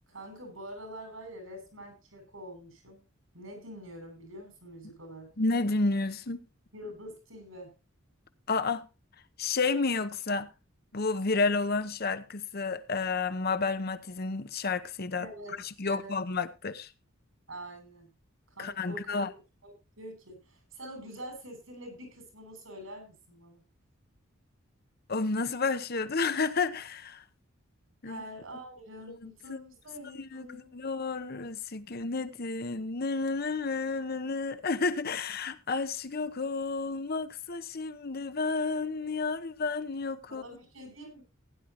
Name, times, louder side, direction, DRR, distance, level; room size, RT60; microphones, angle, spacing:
voice 1, 0.1-3.0 3.3-5.3 6.7-7.7 15.2-15.6 15.8-16.1 17.5-18.1 18.5-19.3 19.6-23.6 28.0-30.8 40.3-41.2, equal, 85° right, 6.9 m, -45 dB
voice 2, 5.4-6.4 8.5-8.9 9.4-10.5 10.9-15.3 15.8-16.9 18.6-19.3 25.1-27.2 28.0-28.2 29.1-29.6 30.2-40.4, left 4 dB, 50° left, 0.9 m, -31 dB
16.5 x 10.0 x 3.0 m
head